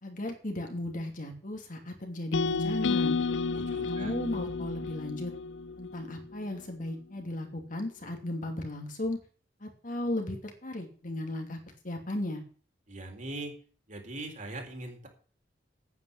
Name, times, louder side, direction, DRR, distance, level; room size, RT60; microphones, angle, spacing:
voice 1, 0.0-3.2 3.8-5.3 5.8-9.2 9.6-11.6 11.8-12.4, left 1 dB, 45° left, 3 dB, 2.7 m, -35 dB
sound 1, 2.3-6.5, left 4 dB, 80° left, 0.6 m, -31 dB
voice 2, 3.5-4.1 12.9-13.6 13.9-15.1, right 2 dB, 45° right, 2 dB, 3.9 m, -41 dB
9.5 x 9.1 x 8.6 m, 0.43 s
head